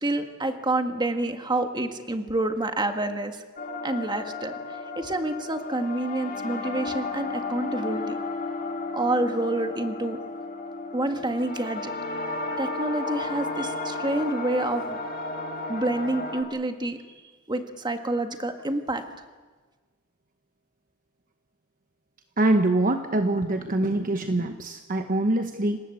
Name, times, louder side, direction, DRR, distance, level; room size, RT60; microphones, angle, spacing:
voice 1, 0.0-3.4 3.8-4.6 5.0-8.2 8.9-10.2 10.9-11.9 12.6-15.0 15.7-17.0 17.5-19.0, right 2 dB, 20° right, 6 dB, 1.7 m, -28 dB
sound 1, 3.6-16.4, left 3 dB, 45° left, 2.6 m, -33 dB
voice 2, 22.4-25.8, right 2 dB, 40° right, 6 dB, 1.1 m, -24 dB
27.0 x 19.0 x 8.1 m, 1.4 s
head